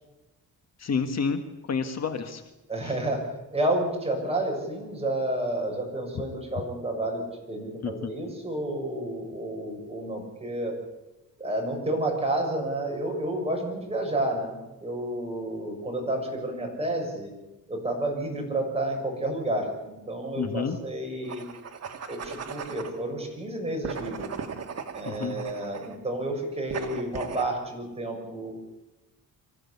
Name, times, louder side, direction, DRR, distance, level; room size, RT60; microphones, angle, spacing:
voice 1, 0.8-1.4 1.7-2.4 2.8-2.9 6.1-6.2 7.8-8.1 20.4-20.8 25.0-25.4, left 5 dB, 50° left, 7 dB, 1.6 m, -29 dB
voice 2, 2.7-3.2 3.5-7.2 7.5-10.7 11.4-17.3 17.7-21.4 22.1-24.3 24.9-28.5, right 1 dB, 15° right, 1 dB, 6.5 m, -30 dB
sound 1, 21.2-23.0 23.8-26.0 26.7-27.5, right 6 dB, 45° right, 1.9 m, -37 dB
24.5 x 15.5 x 8.5 m, 1.0 s
wide cardioid pair, 150°, 34 cm